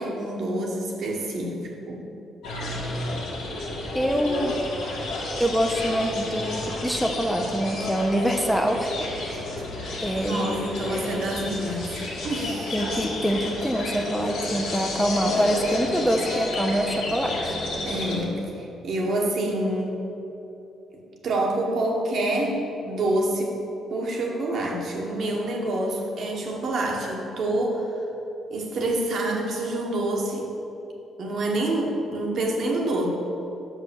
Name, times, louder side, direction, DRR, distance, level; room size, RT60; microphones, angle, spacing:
voice 1, 0.0-2.0 9.7-10.0 10.2-12.0 12.2-12.7 17.8-20.0 21.2-23.5 23.9-27.9 28.5-30.5 31.2-33.1, right 1 dB, 65° right, 0 dB, 1.4 m, -27 dB
sound 1, 2.4-18.2, left 2 dB, 85° left, 1.7 m, -31 dB
voice 2, 3.9-4.6 5.4-8.9 9.2-9.5 10.0-10.6 12.7-17.6, equal, ahead, 2 dB, 0.7 m, -25 dB
5.9 x 5.6 x 6.9 m, 3.0 s
cardioid pair, 90°, 0 cm